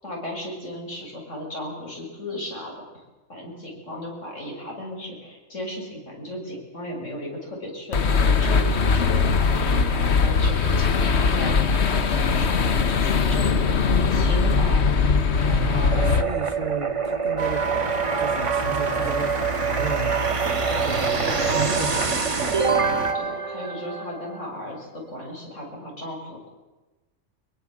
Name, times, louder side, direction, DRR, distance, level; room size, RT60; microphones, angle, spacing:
voice 1, 0.0-3.0 3.3-14.9 15.5-15.9 23.1-26.5, left 1 dB, 75° left, 0 dB, 7.2 m, -36 dB
sound 1, 7.9-16.2, left 5 dB, 60° left, 1.5 m, -20 dB
voice 2, 15.5-17.7 18.2-20.2 20.8-22.3, right 4 dB, 50° right, 9 dB, 1.8 m, -33 dB
sound 2, 15.9-24.6, right 5 dB, 25° right, 1.1 m, -26 dB
sound 3, 17.4-23.1, right 3 dB, 75° right, 2.4 m, -28 dB
24.0 x 22.5 x 7.6 m, 1.1 s
omnidirectional pair, 1.3 m